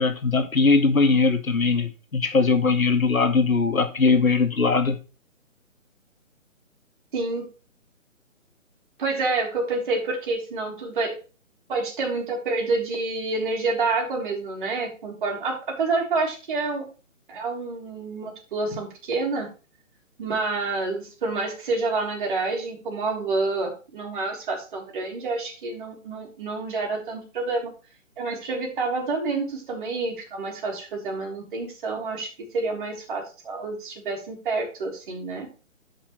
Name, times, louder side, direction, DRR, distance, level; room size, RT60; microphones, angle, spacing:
voice 1, 0.0-5.0, left 4 dB, 85° left, 1.5 m, -20 dB
voice 2, 7.1-7.5 9.0-11.1 11.7-16.8 17.3-19.5 20.2-27.7 28.2-32.3 32.5-35.5, right 3 dB, 40° right, 3.1 m, -28 dB
13.0 x 5.3 x 3.2 m
figure-of-eight pair, 145°, 40 cm